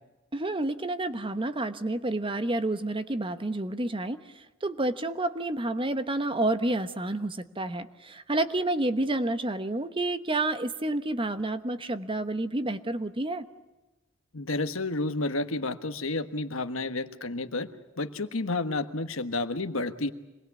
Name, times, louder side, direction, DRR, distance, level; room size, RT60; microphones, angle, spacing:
voice 1, 0.3-13.4, right 2 dB, 25° right, 11 dB, 1.1 m, -29 dB
voice 2, 14.3-17.7 18.0-20.1, left 2 dB, 70° left, 9 dB, 1.4 m, -30 dB
26.5 x 20.5 x 8.3 m, 1.1 s
head